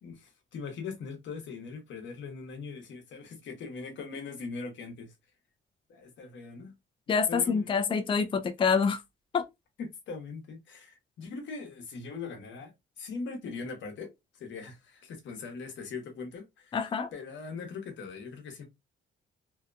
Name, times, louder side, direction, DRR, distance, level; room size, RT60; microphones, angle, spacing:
voice 1, 0.0-5.1 5.9-6.7 7.3-7.8 9.8-18.6, left 4 dB, 70° left, 0.9 m, -41 dB
voice 2, 7.1-9.0 9.3-9.4 16.7-17.1, left 5 dB, 25° left, 0.4 m, -26 dB
2.7 x 2.1 x 2.4 m
cardioid pair, 90°, 20 cm